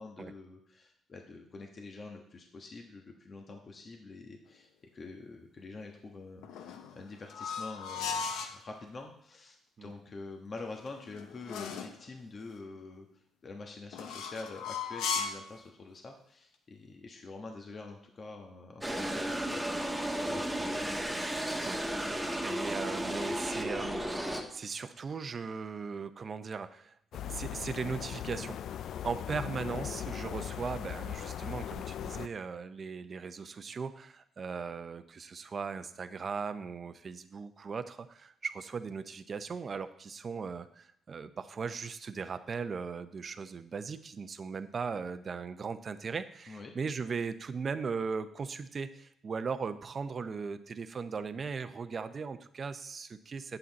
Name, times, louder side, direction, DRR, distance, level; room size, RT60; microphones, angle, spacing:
voice 1, 0.0-21.0 46.5-46.7, left 3 dB, 40° left, 2 dB, 1.2 m, -46 dB
sound 1, 6.4-8.6 10.6-12.0 13.9-15.5, left 6 dB, 85° left, 0.8 m, -37 dB
sound 2, 18.8-24.4, equal, 5° right, 1.4 m, -34 dB
voice 2, 22.1-26.9 27.2-28.6 29.0-53.6, right 5 dB, 40° right, 11 dB, 0.6 m, -38 dB
sound 3, 27.1-32.3, left 10 dB, 70° left, 0.3 m, -39 dB
8.6 x 7.8 x 4.1 m, 0.71 s
cardioid pair, 90°, 0 cm